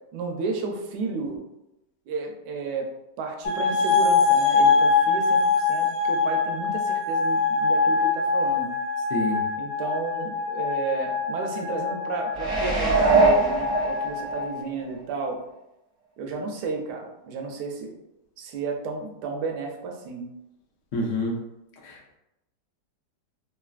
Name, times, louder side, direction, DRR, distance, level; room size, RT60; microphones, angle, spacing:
voice 1, 0.1-1.4 2.1-2.9 3.2-8.7 9.6-15.4 16.2-17.9 18.4-20.2, right 4 dB, 75° right, 2 dB, 1.1 m, -32 dB
sound 1, 3.4-14.5, left 4 dB, 85° left, 1.3 m, -24 dB
sound 2, 12.3-14.4 14.9-15.0, right 3 dB, 35° right, 0.5 m, -21 dB
voice 2, 20.9-21.4 21.8-22.2, left 2 dB, 65° left, -2 dB, 0.7 m, -27 dB
3.2 x 2.4 x 2.3 m, 0.89 s
omnidirectional pair, 1.9 m